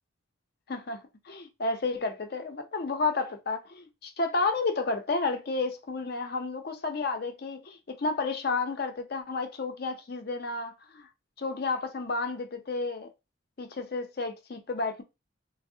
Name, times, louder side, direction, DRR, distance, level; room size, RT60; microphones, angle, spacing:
voice 1, 0.7-11.1 11.4-13.1 13.6-15.0, left 3 dB, 50° left, 0.5 m, -31 dB
3.4 x 2.0 x 2.6 m
head